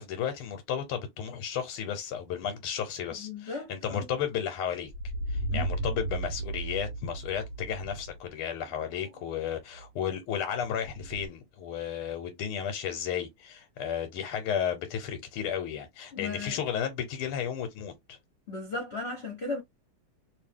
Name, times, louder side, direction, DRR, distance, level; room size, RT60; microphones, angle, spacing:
voice 1, 0.0-4.9 5.3-18.2, left 8 dB, 80° left, 1.7 m, -33 dB
voice 2, 3.2-4.1 5.5-5.7 16.1-16.6 18.5-19.6, left 3 dB, 40° left, 1.1 m, -36 dB
sound 1, 4.9-8.2 8.6-9.4 9.7-9.8 10.8-11.3, right 2 dB, 60° right, 1.3 m, -35 dB
3.3 x 2.8 x 3.5 m
omnidirectional pair, 2.4 m